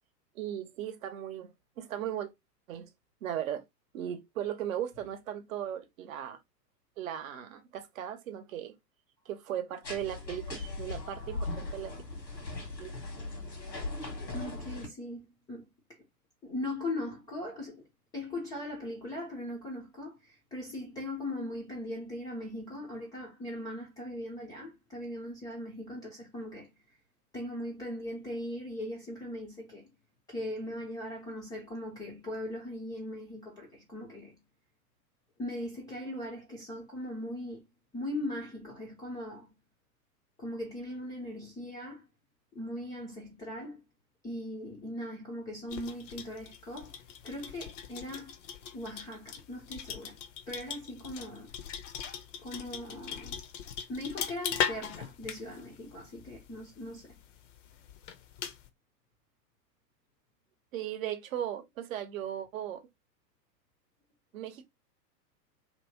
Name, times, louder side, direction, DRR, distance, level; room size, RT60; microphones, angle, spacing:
voice 1, 0.3-2.3 2.7-2.9 3.2-3.6 3.9-6.4 7.0-8.7 9.2-11.9 12.8-12.9 60.7-62.8 64.3-64.6, right 10 dB, 55° right, 0.8 m, -37 dB
sound 1, 9.8-14.9, left 2 dB, 90° left, 1.4 m, -39 dB
voice 2, 14.3-15.7 16.4-17.8 18.1-26.7 27.3-29.9 30.3-34.4 35.4-37.7 37.9-39.5 40.4-42.0 42.5-43.8 44.2-46.9 47.2-48.3 48.7-50.2 50.5-51.5 52.4-53.4 53.9-57.2, left 1 dB, 10° left, 0.4 m, -39 dB
sound 2, 45.7-58.7, left 9 dB, 50° left, 0.6 m, -40 dB
2.9 x 2.7 x 2.8 m
figure-of-eight pair, 105°, 49 cm